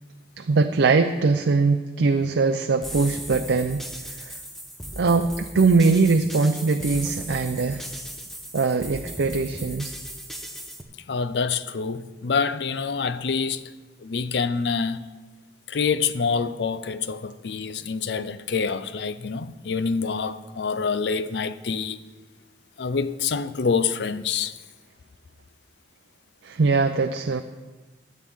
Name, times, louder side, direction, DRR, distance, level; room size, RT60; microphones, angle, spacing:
voice 1, 0.4-3.8 4.2-4.3 5.0-7.9 8.5-9.9 26.4-27.4, right 4 dB, 90° right, 0.5 m, -21 dB
sound 1, 2.8-10.8, equal, ahead, 0.9 m, -37 dB
voice 2, 11.1-13.6 14.0-15.0 15.7-22.0 22.8-24.6, left 5 dB, 70° left, 0.5 m, -26 dB
15.5 x 10.5 x 3.6 m
head